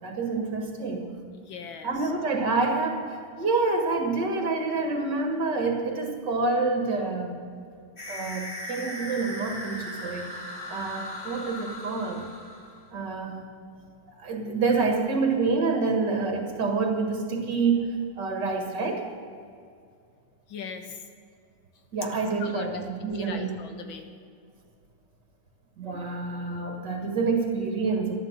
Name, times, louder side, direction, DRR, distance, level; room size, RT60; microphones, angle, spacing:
voice 1, 0.0-1.2 1.8-7.4 8.1-10.3 10.7-12.3 12.9-13.5 14.1-19.1 21.9-23.6 25.8-28.1, right 4 dB, 60° right, 3 dB, 2.4 m, -27 dB
voice 2, 1.3-2.1 20.5-21.0 22.1-22.8 23.1-24.1, left 6 dB, 75° left, 6 dB, 1.9 m, -40 dB
scary haunted scream voice, 8.0-12.9, left 1 dB, 25° left, 4.4 m, -38 dB
13.5 x 11.0 x 8.0 m, 2.2 s
omnidirectional pair, 2.2 m